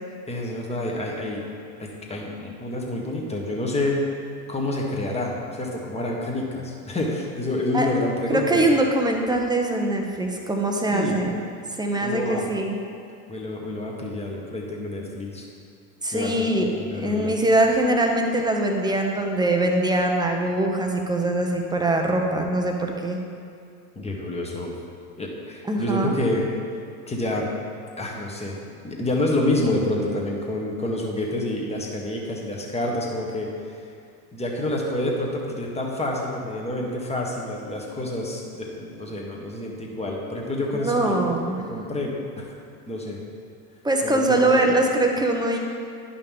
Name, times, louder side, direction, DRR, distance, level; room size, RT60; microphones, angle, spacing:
voice 1, 0.3-1.4 1.8-4.0 4.5-8.6 10.9-11.2 12.0-12.4 13.3-15.4 16.1-17.4 23.9-24.7 25.2-26.8 27.1-27.5 28.0-28.6 28.8-33.9 34.3-41.2 41.7-42.6 42.9-43.2 44.0-44.7, left 1 dB, 15° left, -1 dB, 1.5 m, -28 dB
voice 2, 8.3-11.4 11.8-12.8 16.0-23.2 25.7-26.1 40.7-41.6 43.8-45.6, right 1 dB, 10° right, 2 dB, 0.8 m, -22 dB
10.5 x 5.6 x 3.6 m, 2.4 s
hypercardioid pair, 90°, 45 cm